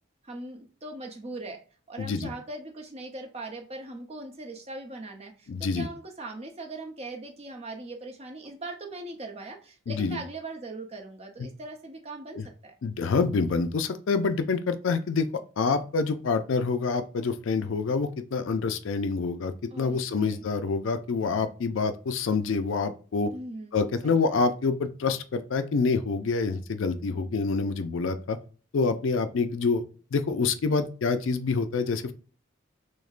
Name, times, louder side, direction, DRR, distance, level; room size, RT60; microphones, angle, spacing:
voice 1, 0.2-1.6 1.9-12.8 19.7-20.5 23.3-24.3, right 2 dB, 30° right, 2 dB, 0.7 m, -40 dB
voice 2, 2.0-2.3 5.5-5.9 9.9-10.2 11.4-11.5 12.4-12.5 12.8-15.3 15.6-23.3 23.7-28.4 28.7-29.8 30.1-32.1, left 4 dB, 70° left, 10 dB, 0.4 m, -27 dB
6.2 x 2.1 x 2.4 m, 0.38 s
head